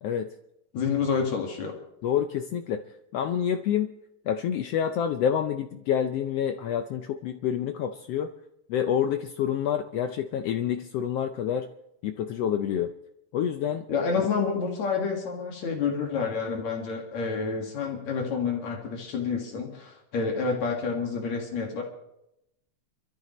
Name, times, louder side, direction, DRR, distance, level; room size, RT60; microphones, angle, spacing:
voice 1, 0.7-1.7 13.9-21.8, left 5 dB, 65° left, 0 dB, 3.1 m, -29 dB
voice 2, 2.0-2.8 3.1-3.9 4.3-8.3 8.7-11.7 12.0-12.9 13.3-13.8, left 9 dB, 80° left, 7 dB, 1.4 m, -27 dB
27.0 x 13.5 x 3.1 m, 0.83 s
omnidirectional pair, 3.5 m